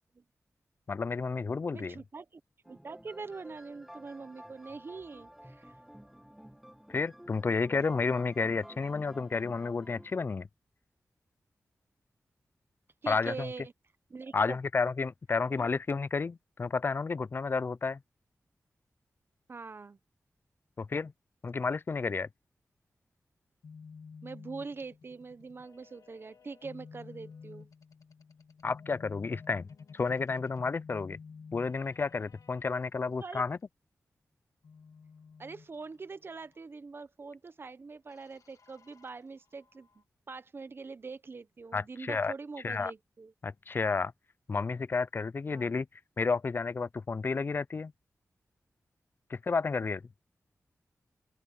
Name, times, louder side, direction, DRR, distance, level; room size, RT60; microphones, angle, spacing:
voice 1, 0.9-2.0 6.9-10.5 13.1-13.5 14.3-18.0 20.8-21.1 21.4-22.3 28.6-31.2 31.5-33.6 41.7-42.3 42.6-42.9 43.4-44.1 44.5-45.9 46.2-47.9 49.3-50.0, left 4 dB, 40° left, 0.4 m, -31 dB
voice 2, 1.7-2.4 2.7-5.7 13.0-13.7 14.1-14.6 15.5-15.7 19.5-20.0 24.2-27.7 33.2-33.4 35.4-39.9 40.3-43.3 45.5-45.7, right 4 dB, 45° right, 0.8 m, -43 dB
sound 1, 2.6-10.2, equal, 5° right, 1.4 m, -52 dB
sound 2, 23.6-32.7 34.6-36.6 38.1-40.0, left 5 dB, 85° left, 1.4 m, -52 dB
open air
wide cardioid pair, 120°, 6 cm